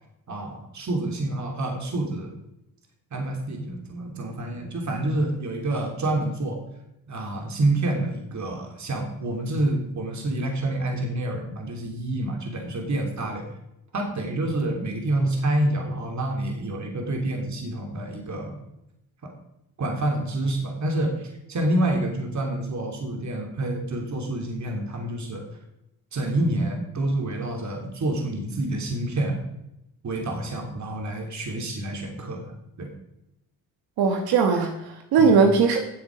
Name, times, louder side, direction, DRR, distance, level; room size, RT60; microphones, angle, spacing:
voice 1, 0.3-2.3 3.1-6.6 7.1-13.4 13.9-18.6 19.2-19.3 19.8-25.4 26.1-29.4 30.0-32.5 32.8-32.9 35.2-35.3, right 1 dB, 50° right, 2 dB, 3.0 m, -28 dB
voice 2, 34.0-35.8, right 5 dB, 85° right, 4 dB, 1.5 m, -19 dB
15.0 x 7.8 x 5.1 m, 0.84 s
cardioid pair, 75°, 37 cm